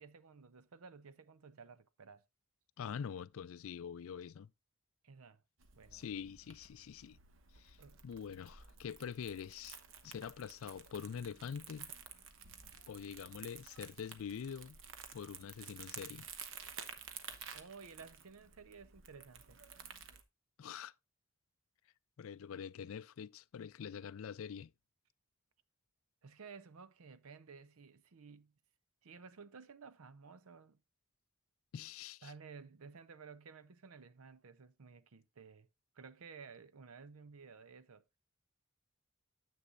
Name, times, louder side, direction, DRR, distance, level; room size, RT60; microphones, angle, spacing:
voice 1, 0.0-2.2 5.0-5.4 5.8-6.1 7.8-8.0 17.5-19.6 26.2-28.5 29.0-30.8 32.2-35.7 35.9-38.0, right 5 dB, 90° right, 0.7 m, -55 dB
voice 2, 2.8-4.5 5.9-7.2 7.5-7.8 8.0-9.8 10.0-11.9 12.9-14.8 15.1-16.3 20.6-20.9 22.2-24.7 31.7-32.3, left 7 dB, 70° left, 0.4 m, -45 dB
Crumpling crinkling, 5.6-20.2, right 7 dB, 60° right, 1.0 m, -52 dB
9.9 x 7.6 x 2.5 m
head